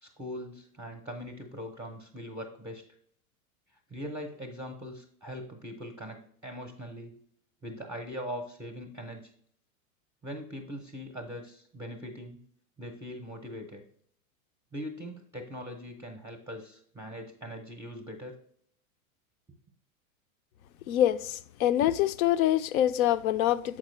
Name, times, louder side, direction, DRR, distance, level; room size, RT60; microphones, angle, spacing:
voice 1, 0.0-2.8 3.9-7.1 7.6-9.3 10.2-12.4 12.8-13.8 14.7-18.4, equal, 5° right, 0.5 m, -41 dB
voice 2, 20.9-23.8, left 12 dB, 80° left, 0.5 m, -25 dB
7.4 x 4.5 x 3.1 m
supercardioid pair, 135°, 42 cm